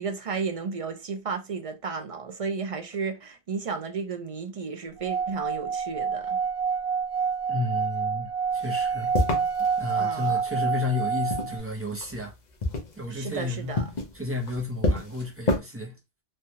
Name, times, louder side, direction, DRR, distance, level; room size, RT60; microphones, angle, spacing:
voice 1, 0.0-6.4 10.0-10.4 13.1-13.9, right 5 dB, 50° right, 0.4 m, -33 dB
Singing / Glass, 5.0-11.6, right 6 dB, 65° right, 1.3 m, -28 dB
voice 2, 7.5-9.2 9.6-12.3 13.0-13.8 14.1-16.0, left 2 dB, 15° right, 0.7 m, -32 dB
sound 1, 8.5-10.4 11.0-12.3 12.6-15.6, left 2 dB, 45° left, 0.8 m, -29 dB
3.2 x 2.3 x 2.7 m
omnidirectional pair, 1.1 m